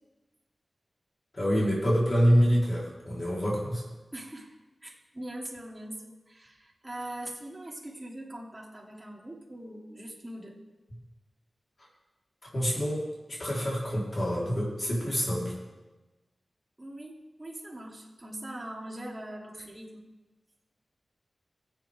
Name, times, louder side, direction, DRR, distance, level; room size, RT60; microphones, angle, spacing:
voice 1, 1.3-3.8 12.5-15.5, equal, 40° left, -5 dB, 4.1 m, -26 dB
voice 2, 4.1-4.5 4.8-10.6 16.8-20.0, right 1 dB, 25° right, -3 dB, 3.0 m, -42 dB
20.5 x 8.3 x 3.7 m, 1.1 s
wide cardioid pair, 70°, 0 cm